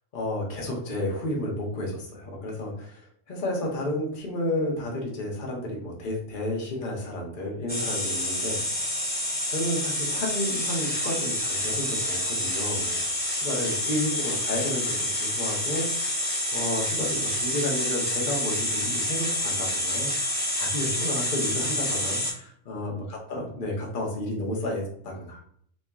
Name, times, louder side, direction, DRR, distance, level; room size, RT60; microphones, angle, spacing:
voice 1, 0.1-8.6 9.5-13.1 13.3-25.4, left 1 dB, 45° left, -1 dB, 1.0 m, -32 dB
sound 1, 7.7-22.3, left 1 dB, 10° left, 0.9 m, -28 dB
3.1 x 2.8 x 3.5 m, 0.63 s
omnidirectional pair, 1.3 m